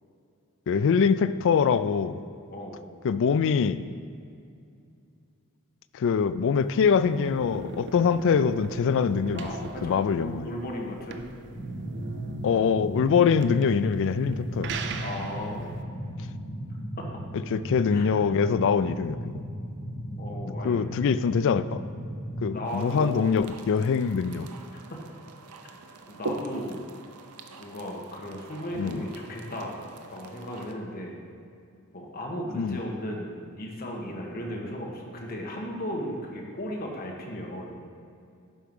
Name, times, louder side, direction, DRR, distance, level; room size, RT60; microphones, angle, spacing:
voice 1, 0.7-2.2 3.0-3.8 5.9-9.5 9.8-10.5 12.4-14.7 17.5-19.2 20.6-21.8 22.4-24.5 28.8-29.0 32.5-32.8, left 6 dB, 60° left, 13 dB, 0.3 m, -24 dB
voice 2, 2.5-2.8 9.3-11.2 15.0-15.7 17.0-17.1 17.9-18.1 20.2-20.8 22.5-23.2 24.7-25.0 26.1-26.9 27.6-29.8 30.1-31.1 31.9-37.8, equal, 45° left, 0 dB, 1.3 m, -36 dB
sound 1, 6.6-15.8, right 4 dB, 55° right, 0.5 m, -40 dB
sound 2, 11.5-22.5, equal, 15° left, 1.9 m, -36 dB
sound 3, 22.6-30.7, right 2 dB, 90° right, 0.7 m, -42 dB
11.5 x 4.6 x 5.3 m, 2.4 s
head